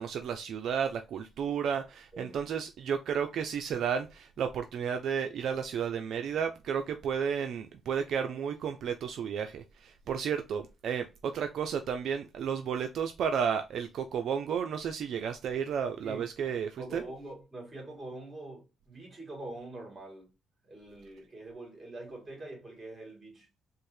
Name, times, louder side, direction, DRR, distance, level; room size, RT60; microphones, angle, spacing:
voice 1, 0.0-17.0, right 7 dB, 70° right, 0.4 m, -32 dB
voice 2, 16.0-20.3 20.7-23.5, right 2 dB, 30° right, 2.3 m, -44 dB
4.3 x 2.1 x 3.1 m
cardioid pair, 90°, 0 cm